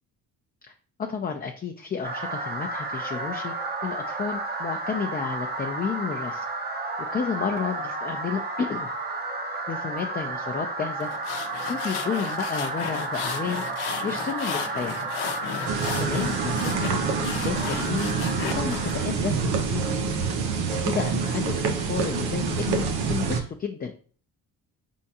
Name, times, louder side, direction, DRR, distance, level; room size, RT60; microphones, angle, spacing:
voice 1, 1.0-3.5 3.8-6.4 7.1-8.9 9.7-11.1 11.7-13.6 14.0-15.1 16.0-18.1 18.5-19.9 20.7-23.9, left 6 dB, 25° left, 4 dB, 0.4 m, -31 dB
sound 1, 2.0-19.1, right 2 dB, 25° right, 0.6 m, -32 dB
sound 2, 11.0-18.9, left 8 dB, 85° left, 0.7 m, -35 dB
sound 3, 15.7-23.4, right 5 dB, 90° right, 0.7 m, -27 dB
4.3 x 3.6 x 2.8 m, 0.43 s
cardioid pair, 95°, 37 cm